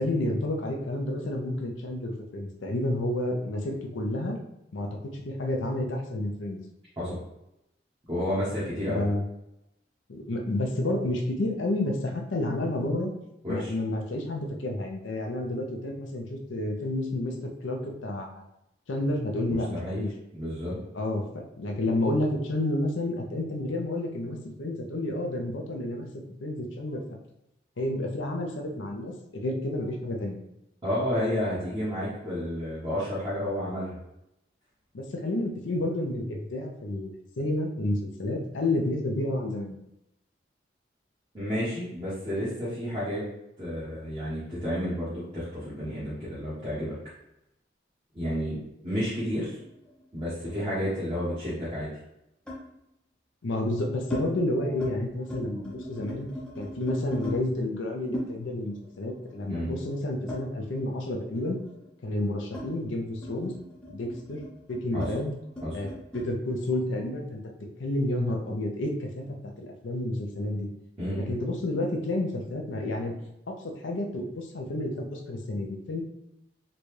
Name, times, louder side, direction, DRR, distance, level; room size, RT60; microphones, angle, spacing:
voice 1, 0.0-4.4 4.7-6.6 8.9-9.3 10.1-13.1 13.5-18.4 18.9-20.1 20.9-27.0 27.8-30.4 34.9-39.8 53.4-56.3 56.6-61.6 62.0-63.5 63.9-64.4 64.7-65.3 65.7-67.4 67.8-70.7 71.3-73.1 73.5-73.6 73.8-76.0, left 1 dB, 90° left, 2 dB, 0.6 m, -30 dB
voice 2, 8.1-9.0 13.4-13.7 19.5-20.0 20.3-20.8 30.8-34.0 41.3-43.3 43.6-46.9 48.1-48.6 48.8-49.5 50.1-51.9 59.5-59.7 64.9-65.1 65.6-65.8 71.0-71.3, equal, 25° right, -11 dB, 1.1 m, -31 dB
sound 1, 49.6-51.2 52.5-52.7 53.5-54.3 54.6-55.0 55.2-57.4 58.1-61.0 61.3-66.3, equal, 5° left, 0.7 m, -39 dB
3.9 x 2.3 x 3.2 m, 0.85 s
head